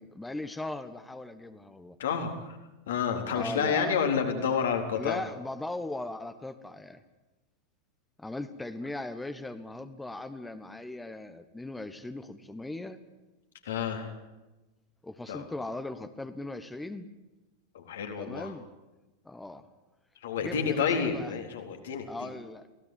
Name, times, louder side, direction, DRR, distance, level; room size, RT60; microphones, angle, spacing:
voice 1, 0.0-2.0 3.3-3.9 4.9-7.0 8.2-13.0 15.0-17.1 18.2-18.6 19.2-19.6 20.4-21.3 22.1-22.7, left 2 dB, 5° left, 10 dB, 1.4 m, -38 dB
voice 2, 2.0-2.4 2.9-5.2 13.6-14.1 15.3-15.4 17.7-18.5 20.2-22.3, left 6 dB, 60° left, 4 dB, 4.0 m, -29 dB
23.0 x 17.5 x 8.8 m, 1.1 s
figure-of-eight pair, 90°, 0 cm